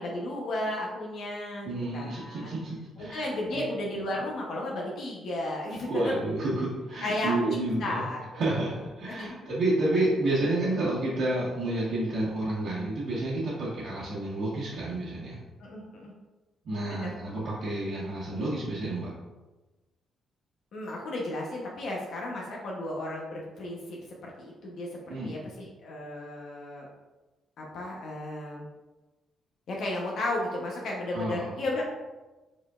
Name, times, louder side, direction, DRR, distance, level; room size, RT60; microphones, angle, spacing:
voice 1, 0.0-2.5 3.0-6.1 7.0-8.6 9.1-9.4 15.6-16.1 16.8-17.1 20.7-26.9 27.6-28.7 29.7-31.8, left 1 dB, 65° left, -2 dB, 0.8 m, -34 dB
voice 2, 1.6-3.2 3.5-3.6 5.9-8.0 8.3-15.4 16.6-19.1 25.1-25.3 31.1-31.4, right 2 dB, 65° right, -10 dB, 1.3 m, -30 dB
5.1 x 4.2 x 2.4 m, 1.1 s
cardioid pair, 130°, 0 cm